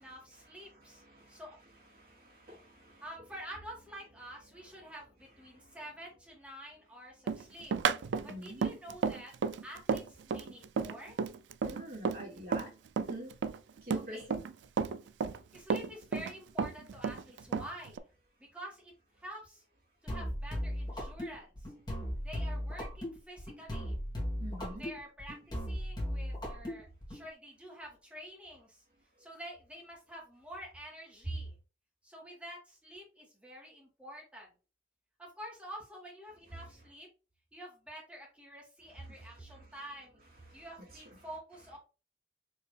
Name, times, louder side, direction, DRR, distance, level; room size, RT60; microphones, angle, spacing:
voice 1, 0.0-1.6 3.0-7.7 8.0-9.3 9.6-11.2 13.9-14.3 15.5-18.1 18.4-19.6 20.0-21.7 22.2-24.0 24.6-28.8 29.2-31.6 32.0-34.5 35.2-37.1 37.5-40.2 40.5-41.8, equal, 5° right, -2 dB, 1.7 m, -48 dB
voice 2, 0.7-1.4 1.9-3.0 4.8-4.9 5.6-5.7 8.2-8.6 11.6-12.7 13.0-13.3 13.8-14.4 24.4-24.8 36.5-36.6 39.2-39.7 40.4-40.7 40.9-41.2, equal, 55° right, -3 dB, 2.4 m, -47 dB
Run, 7.3-12.7 13.0-14.5 14.8-16.3 16.6-18.0, right 5 dB, 85° right, 0.3 m, -32 dB
sound 1, 20.1-27.2, equal, 25° left, 1.5 m, -37 dB
4.6 x 3.0 x 3.2 m, 0.33 s
head